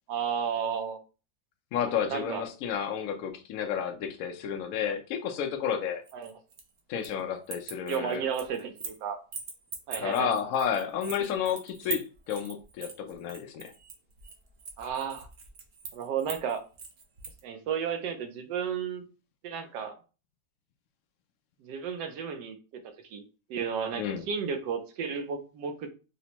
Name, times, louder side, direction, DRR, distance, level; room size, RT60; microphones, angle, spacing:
voice 1, 0.1-1.0 2.1-2.4 6.1-6.3 7.9-9.2 9.9-10.4 14.8-15.3 15.9-16.6 17.4-19.0 19.4-20.0 21.6-22.8 23.1-23.2 23.5-25.9, right 7 dB, 85° right, 1.2 m, -33 dB
voice 2, 1.7-6.0 6.9-8.2 10.0-13.7 23.9-24.3, left 8 dB, 70° left, 0.9 m, -31 dB
sound 1, 6.1-7.2 7.5-9.0 9.3-17.4, right 5 dB, 70° right, 0.6 m, -41 dB
4.2 x 2.1 x 2.8 m
omnidirectional pair, 1.8 m